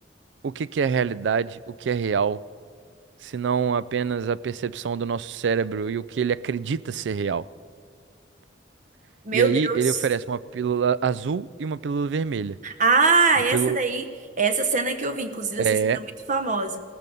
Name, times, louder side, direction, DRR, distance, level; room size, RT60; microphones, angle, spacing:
voice 1, 0.4-2.4 3.2-7.5 9.3-12.6 13.5-13.8 15.6-16.0, right 6 dB, 75° right, 0.4 m, -25 dB
voice 2, 9.2-10.0 12.6-14.1 14.4-15.7 15.9-16.8, right 4 dB, 45° right, 1.0 m, -23 dB
18.0 x 14.0 x 5.3 m
head